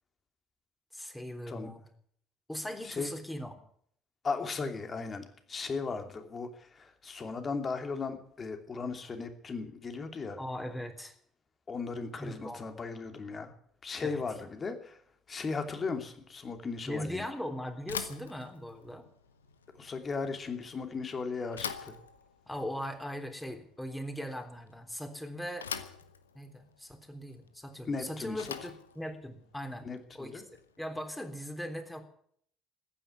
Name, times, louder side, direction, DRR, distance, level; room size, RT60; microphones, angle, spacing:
voice 1, 0.9-1.8 2.5-3.5 10.4-11.2 12.2-12.6 14.0-14.2 16.9-19.1 22.5-25.7 26.3-29.9 30.1-30.4 30.8-32.0, equal, 10° left, 5 dB, 3.5 m, -39 dB
voice 2, 4.2-10.4 11.7-13.5 13.8-15.0 15.3-17.2 19.8-21.9 27.8-28.5 29.8-30.4, left 4 dB, 35° left, 6 dB, 2.8 m, -37 dB
Bicycle / Thump thud, 17.8-30.9, left 7 dB, 85° left, 0.9 m, -45 dB
15.0 x 10.0 x 9.6 m, 0.64 s
figure-of-eight pair, 55°, 0 cm